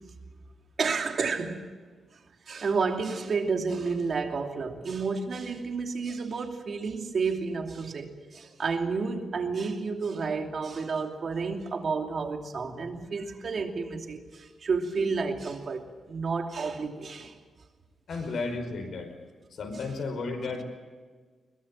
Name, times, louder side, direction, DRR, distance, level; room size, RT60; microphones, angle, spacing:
voice 1, 0.8-1.6 2.5-17.3 18.1-18.3 19.7-19.9 20.4-20.5, right 4 dB, 50° right, 2.8 m, -31 dB
voice 2, 18.1-19.1 19.6-20.6, left 3 dB, 70° left, 5.2 m, -33 dB
22.0 x 21.5 x 7.5 m
wide cardioid pair, 120°, 0 cm